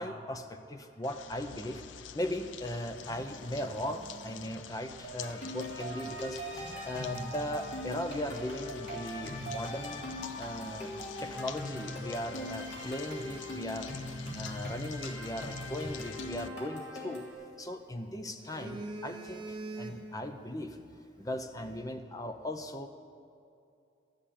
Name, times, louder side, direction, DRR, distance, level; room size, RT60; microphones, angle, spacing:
voice 1, 0.0-1.8 2.1-10.0 10.4-10.9 11.2-14.0 14.3-17.2 17.6-20.8 21.2-22.9, left 1 dB, 20° left, 7 dB, 0.6 m, -38 dB
sound 1, 1.0-16.5, left 8 dB, 90° left, 0.4 m, -48 dB
Telephone, 2.5-5.0 6.3-8.2 8.8-9.0 9.5-9.6 10.0-12.0 12.3-12.4 12.9-15.3 16.8-17.8 18.2-20.3 20.6-20.9, right 2 dB, 25° right, 0.9 m, -48 dB
sound 2, 5.0-17.3, left 1 dB, 65° left, 3.1 m, -41 dB
12.5 x 7.7 x 8.6 m, 2.6 s
head